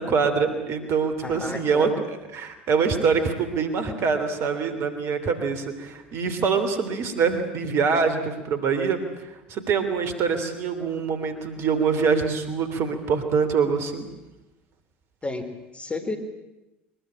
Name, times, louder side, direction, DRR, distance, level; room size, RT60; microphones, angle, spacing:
voice 1, 0.0-1.9 2.3-14.0, right 5 dB, 50° right, 8 dB, 3.2 m, -24 dB
voice 2, 1.2-2.0 15.2-16.2, left 2 dB, 20° left, 6 dB, 3.9 m, -32 dB
23.0 x 21.5 x 8.9 m, 0.97 s
figure-of-eight pair, 65°, 6 cm